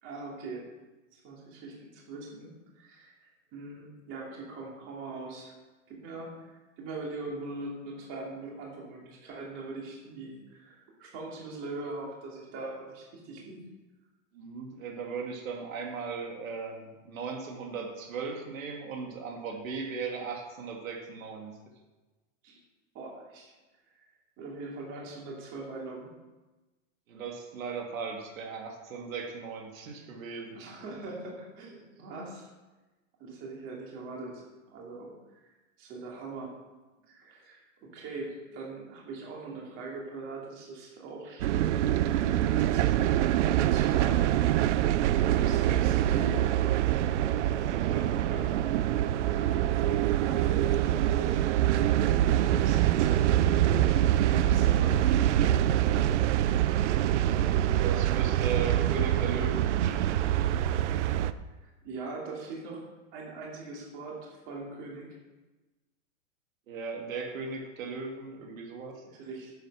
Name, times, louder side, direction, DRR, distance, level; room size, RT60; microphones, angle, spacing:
voice 1, 0.0-0.6 1.1-3.1 3.5-5.5 5.9-13.6 22.4-22.6 22.9-23.5 24.4-26.1 30.5-32.5 33.2-36.5 37.1-43.1 43.5-44.2 45.2-46.5 47.3-48.5 49.3-49.7 50.2-51.4 52.2-55.8 61.6-62.8 63.1-65.2 69.0-69.5, right 3 dB, 30° right, -2 dB, 2.8 m, -41 dB
voice 2, 14.3-21.6 27.1-30.7 57.2-60.4 66.7-69.0, right 5 dB, 85° right, 1 dB, 2.4 m, -37 dB
sound 1, 41.4-61.3, right 12 dB, 65° right, 0.6 m, -25 dB
10.0 x 7.9 x 6.2 m, 1.2 s
supercardioid pair, 165°, 39 cm